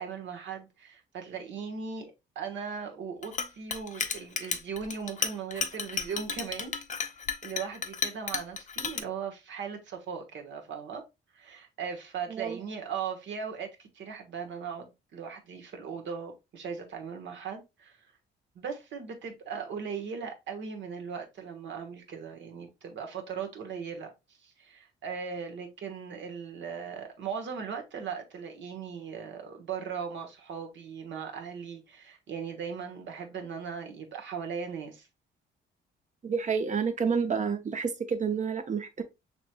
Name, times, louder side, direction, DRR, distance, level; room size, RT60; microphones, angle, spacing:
voice 1, 0.0-7.1 7.4-11.0 11.3-18.0 18.5-35.1, right 6 dB, 70° right, 1.2 m, -38 dB
Chink clink, 3.2-9.0, left 6 dB, 40° left, 0.7 m, -33 dB
voice 2, 12.3-12.6 36.2-39.0, right 6 dB, 40° right, 0.8 m, -29 dB
5.9 x 3.0 x 2.2 m
cardioid pair, 90°, 20 cm